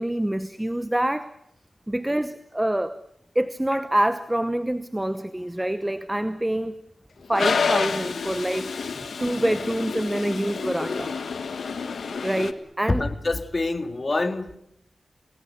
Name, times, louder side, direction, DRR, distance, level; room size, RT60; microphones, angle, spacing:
voice 1, 0.0-1.3 1.9-3.0 3.3-6.8 7.3-11.1 12.2-13.1, right 1 dB, 10° right, 13 dB, 1.0 m, -26 dB
Toilet flush, 7.3-12.5, left 5 dB, 80° left, 1.6 m, -28 dB
voice 2, 12.9-14.6, left 2 dB, 35° left, 10 dB, 2.0 m, -26 dB
29.0 x 19.5 x 8.1 m, 0.75 s
wide cardioid pair, 100°, 0 cm